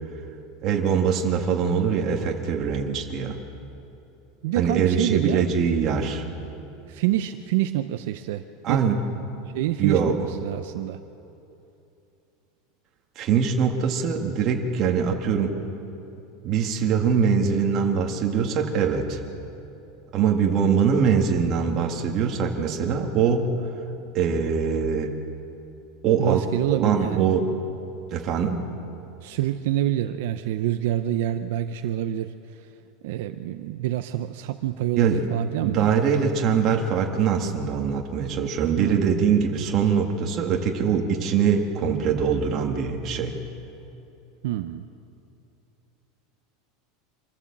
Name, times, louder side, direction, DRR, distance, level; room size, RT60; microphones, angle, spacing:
voice 1, 0.6-3.4 4.6-6.2 8.6-9.0 9.8-10.2 13.2-15.6 16.4-19.2 20.1-23.6 24.1-25.1 26.0-27.5 28.1-28.6 35.0-35.2 35.6-43.4, right 6 dB, 30° right, 2 dB, 1.9 m, -23 dB
voice 2, 4.4-5.7 6.9-8.8 9.5-10.2 10.4-11.0 26.2-27.2 29.2-32.7 33.0-35.9 38.8-39.1 44.4-44.9, right 13 dB, 65° right, 8 dB, 0.7 m, -27 dB
26.0 x 14.5 x 7.4 m, 2.8 s
supercardioid pair, 175°, 0 cm